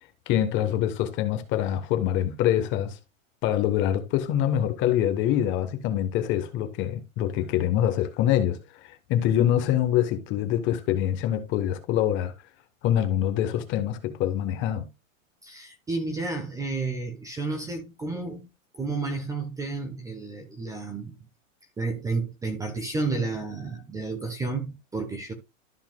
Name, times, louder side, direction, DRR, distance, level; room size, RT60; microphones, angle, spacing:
voice 1, 0.3-3.0 3.4-12.3 12.8-14.9, left 11 dB, 30° left, 1.1 m, -25 dB
voice 2, 15.4-18.5 18.7-21.1 21.8-25.3, right 3 dB, 10° right, 0.8 m, -31 dB
13.5 x 5.6 x 2.3 m
supercardioid pair, 155°, 40 cm